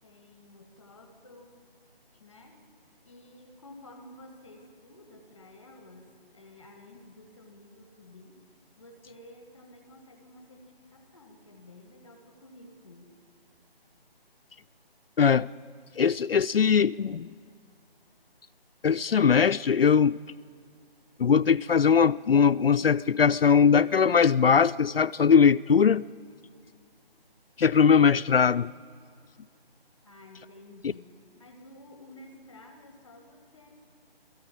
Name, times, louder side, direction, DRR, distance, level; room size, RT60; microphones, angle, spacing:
voice 1, 0.0-1.5 2.2-2.6 3.0-8.4 8.8-10.6 10.9-13.1 30.0-33.7, left 1 dB, 5° left, 1.1 m, -52 dB
voice 2, 15.2-15.5 16.0-17.3 18.8-20.2 21.2-26.0 27.6-28.7, left 6 dB, 70° left, 0.5 m, -21 dB
21.5 x 14.0 x 9.0 m
figure-of-eight pair, 175°, 31 cm